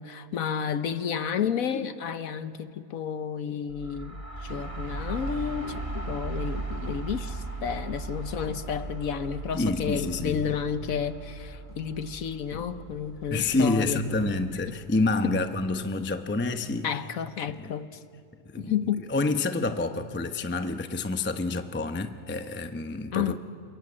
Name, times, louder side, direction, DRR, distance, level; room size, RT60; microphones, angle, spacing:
voice 1, 0.0-14.2 15.2-15.4 16.8-18.0 18.6-19.0 23.1-23.4, left 8 dB, 60° left, 1.2 m, -31 dB
sound 1, 3.7-15.3, right 3 dB, 20° right, 1.4 m, -38 dB
sound 2, 4.3-5.6 6.0-7.2 7.7-8.0 8.5-9.6 9.9-10.4 10.9-11.2 11.7-11.9 12.3-13.9 14.2-15.3 15.6-17.1 17.5-17.8, left 2 dB, 40° left, 4.3 m, -45 dB
voice 2, 9.5-10.6 13.3-16.9 17.6-17.7 18.5-23.4, left 3 dB, 15° left, 0.4 m, -28 dB
28.5 x 21.0 x 8.8 m
omnidirectional pair, 1.7 m